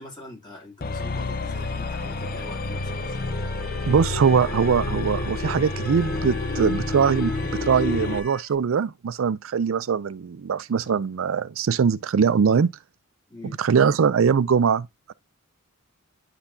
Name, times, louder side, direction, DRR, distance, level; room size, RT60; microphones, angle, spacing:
voice 1, 0.0-3.3 7.3-7.4 13.3-13.6, left 2 dB, 20° left, 2.7 m, -44 dB
sound 1, 0.8-8.3, left 3 dB, 45° left, 0.6 m, -29 dB
Motor vehicle (road) / Siren, 0.9-8.4, equal, 5° left, 1.2 m, -43 dB
voice 2, 3.9-7.3 7.6-12.7 13.6-15.1, right 6 dB, 70° right, 0.4 m, -22 dB
9.8 x 4.0 x 2.7 m
head